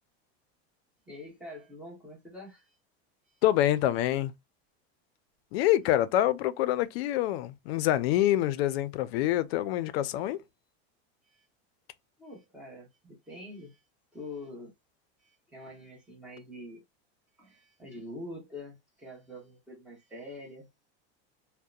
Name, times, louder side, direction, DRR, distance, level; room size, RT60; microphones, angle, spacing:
voice 1, 1.1-2.7 10.3-10.4 11.3-11.5 12.2-13.8 14.1-14.7 15.2-16.8 17.4-20.7, left 1 dB, 5° right, 0.8 m, -45 dB
voice 2, 3.4-4.3 5.5-10.4, left 13 dB, 75° left, 0.5 m, -26 dB
2.7 x 2.1 x 2.3 m
supercardioid pair, 165°, 31 cm